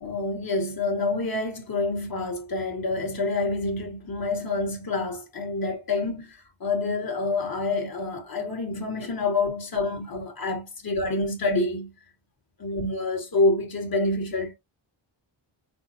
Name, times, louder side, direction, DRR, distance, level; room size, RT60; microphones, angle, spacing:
voice 1, 0.0-6.3 6.6-11.9 12.6-14.5, left 2 dB, 50° left, 1.9 m, -27 dB
6.1 x 2.2 x 2.8 m
cardioid pair, 80°, 47 cm